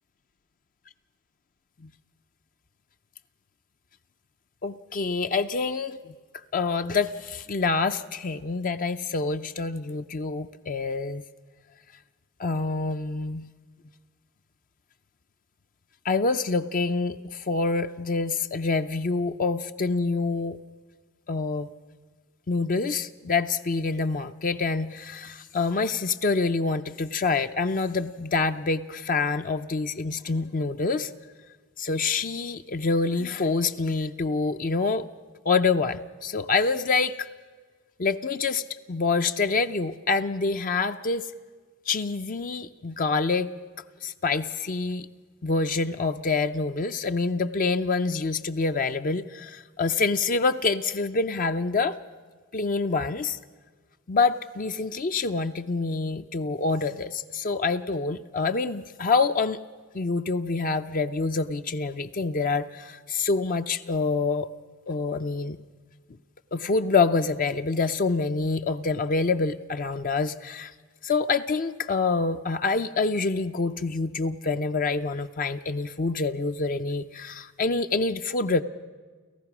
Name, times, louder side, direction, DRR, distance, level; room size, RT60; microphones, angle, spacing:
voice 1, 4.6-6.0 6.5-11.2 12.4-13.5 16.0-20.6 21.3-21.7 22.5-31.1 31.8-35.1 35.4-37.3 38.0-38.6 38.9-41.2 41.9-43.5 44.0-45.1 45.4-52.0 52.5-53.4 54.1-59.6 59.9-64.5 64.9-65.6 66.5-70.7 71.0-78.6, left 4 dB, 40° left, 8 dB, 0.5 m, -26 dB
30.0 x 14.5 x 6.0 m, 1.5 s
head